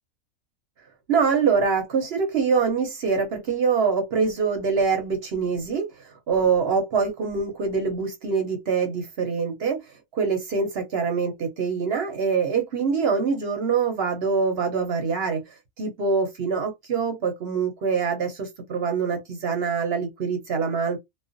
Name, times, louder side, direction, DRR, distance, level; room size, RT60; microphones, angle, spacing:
voice 1, 1.1-9.8 10.1-15.4 15.8-21.0, right 5 dB, 55° right, 0.8 m, -24 dB
2.3 x 2.1 x 2.5 m
omnidirectional pair, 1.4 m